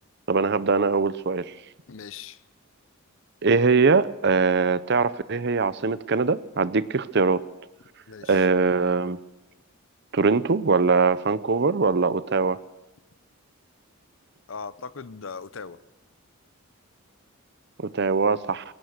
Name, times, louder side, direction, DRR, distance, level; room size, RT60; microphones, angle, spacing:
voice 1, 0.3-1.4 3.4-7.4 8.3-9.2 10.1-12.6 17.8-18.6, right 4 dB, 50° right, 0.7 m, -22 dB
voice 2, 1.9-2.4 8.1-8.5 14.5-15.8, left 5 dB, 60° left, 0.7 m, -39 dB
22.0 x 18.0 x 6.6 m
head